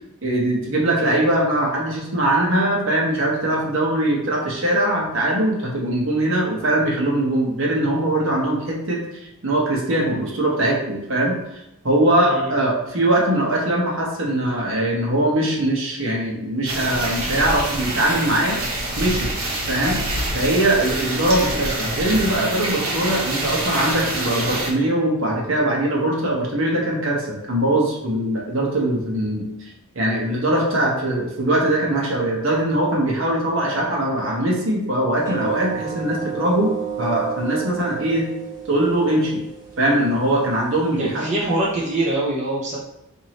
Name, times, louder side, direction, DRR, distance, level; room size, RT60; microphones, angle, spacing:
voice 1, 0.2-11.4 11.8-18.6 19.0-19.3 19.7-20.0 20.3-29.5 29.9-36.7 37.0-38.3 38.7-39.4 39.8-41.3, right 1 dB, 65° right, -2 dB, 1.0 m, -21 dB
sound 1, 16.7-24.7, right 1 dB, 90° right, 1.1 m, -26 dB
sound 2, 35.2-42.1, right 8 dB, 15° right, 1.4 m, -34 dB
voice 2, 41.0-42.8, right 1 dB, 35° right, -6 dB, 0.7 m, -23 dB
4.6 x 2.7 x 2.9 m, 0.89 s
head